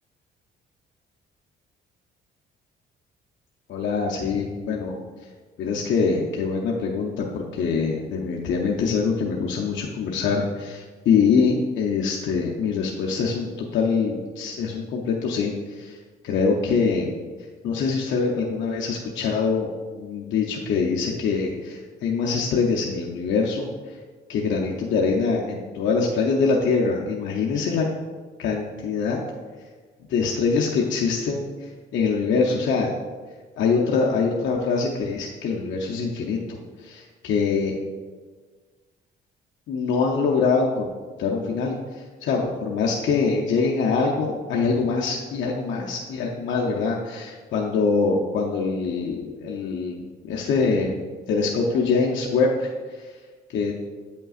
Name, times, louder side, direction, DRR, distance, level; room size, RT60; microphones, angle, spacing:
voice 1, 3.7-5.0 5.6-16.0 16.2-17.1 17.6-23.9 24.3-27.8 28.4-29.2 30.1-33.0 33.6-37.8 39.7-40.9 41.2-53.1 53.5-53.7, left 5 dB, 70° left, -2 dB, 0.7 m, -24 dB
8.7 x 5.3 x 2.4 m, 1.4 s
cardioid pair, 90°, 20 cm